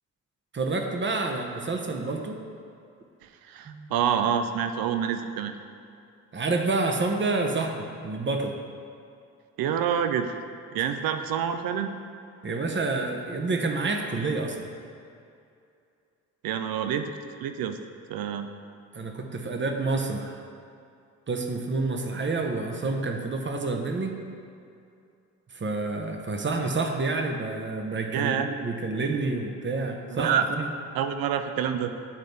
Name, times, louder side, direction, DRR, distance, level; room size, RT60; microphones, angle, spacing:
voice 1, 0.5-2.4 3.6-3.9 6.3-8.6 12.4-14.7 18.9-20.4 21.3-24.2 25.5-30.7, right 3 dB, 30° right, 3 dB, 0.8 m, -28 dB
voice 2, 3.5-5.5 9.6-10.3 10.7-11.9 16.4-17.1 17.4-17.8 18.1-18.5 28.1-28.5 30.2-30.4 30.9-31.9, right 8 dB, 60° right, 8 dB, 0.6 m, -27 dB
9.6 x 3.8 x 3.3 m, 2.5 s
hypercardioid pair, 45°, 41 cm